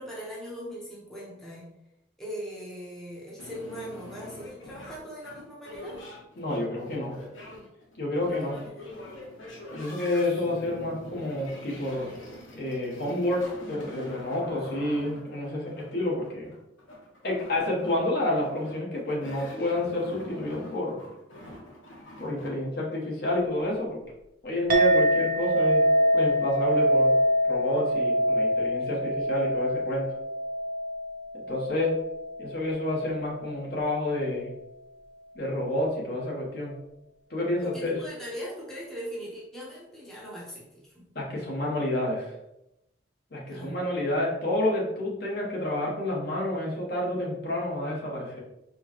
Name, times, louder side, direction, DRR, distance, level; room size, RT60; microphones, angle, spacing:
voice 1, 0.0-1.7 2.2-6.1 8.1-8.8 37.6-41.0 43.5-43.8, equal, 5° left, -6 dB, 0.7 m, -40 dB
sound 1, 3.4-22.5, left 1 dB, 85° left, 0.9 m, -45 dB
voice 2, 6.4-7.2 8.0-8.6 9.7-12.1 12.5-16.5 17.2-21.0 22.2-24.0 24.4-25.8 26.1-27.2 27.5-30.1 31.5-31.9 32.4-34.5 35.3-36.7 37.3-37.9 41.1-42.3 43.3-48.4, left 1 dB, 55° left, -3 dB, 1.0 m, -29 dB
Chink clink, 24.7-33.4, equal, 45° right, 0.7 m, -25 dB
4.4 x 2.1 x 2.9 m, 0.87 s
head